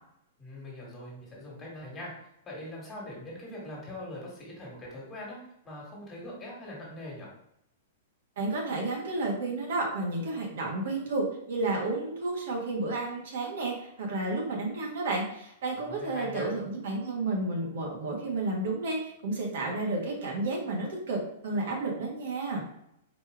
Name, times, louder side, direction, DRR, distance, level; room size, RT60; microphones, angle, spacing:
voice 1, 0.4-5.4 5.6-7.3 15.8-16.5, left 1 dB, 20° left, -4 dB, 1.7 m, -42 dB
voice 2, 8.4-22.6, right 2 dB, 70° right, -1 dB, 1.4 m, -31 dB
4.2 x 3.1 x 3.5 m, 0.75 s
hypercardioid pair, 145°, 0 cm